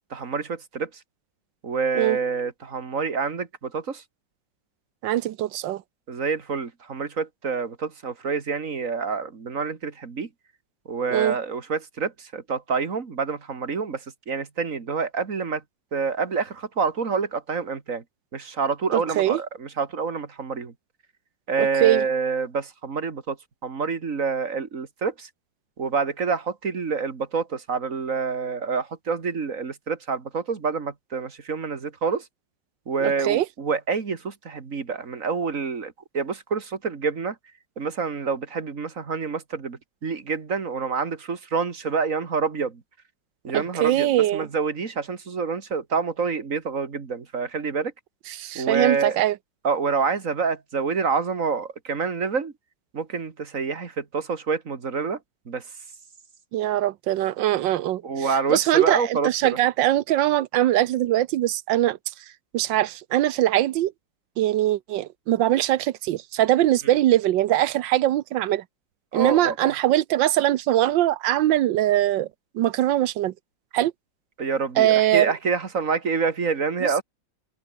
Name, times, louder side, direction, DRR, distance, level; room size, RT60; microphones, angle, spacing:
voice 1, 0.1-0.9 1.6-4.0 6.1-10.3 10.9-15.6 15.9-18.0 18.3-20.7 21.5-23.4 23.6-25.3 25.8-32.2 32.9-37.4 37.8-42.8 43.4-47.9 48.6-49.2 49.6-52.5 52.9-55.2 55.5-55.6 58.0-59.6 69.1-69.7 74.4-77.0, right 5 dB, 45° right, 2.4 m, -27 dB
voice 2, 5.0-5.8 11.1-11.4 18.9-19.4 21.6-22.0 33.0-33.5 43.5-44.5 48.3-49.4 56.5-62.0 62.5-63.9 64.4-68.6 69.1-72.3 72.5-73.3 73.7-73.9 74.8-75.3 76.8-76.9, right 13 dB, 85° right, 1.5 m, -22 dB
omnidirectional pair, 1.9 m